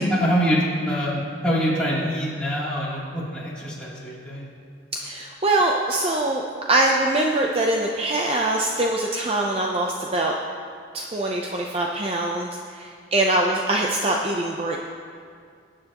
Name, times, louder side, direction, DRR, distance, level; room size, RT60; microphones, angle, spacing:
voice 1, 0.1-4.5, equal, 5° left, -9 dB, 3.0 m, -24 dB
voice 2, 5.0-6.4 6.7-10.3 10.9-14.8, right 2 dB, 30° right, 0 dB, 0.6 m, -23 dB
20.5 x 9.3 x 3.0 m, 2.2 s
head